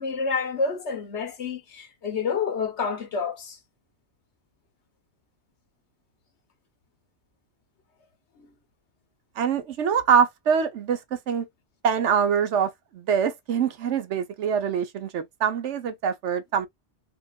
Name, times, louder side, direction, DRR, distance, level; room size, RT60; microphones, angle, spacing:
voice 1, 0.0-3.6 8.4-8.5, left 5 dB, 70° left, 1.4 m, -29 dB
voice 2, 9.4-11.0 11.3-11.5 11.8-16.7, right 7 dB, 85° right, 1.1 m, -24 dB
4.4 x 2.4 x 2.3 m
omnidirectional pair, 1.2 m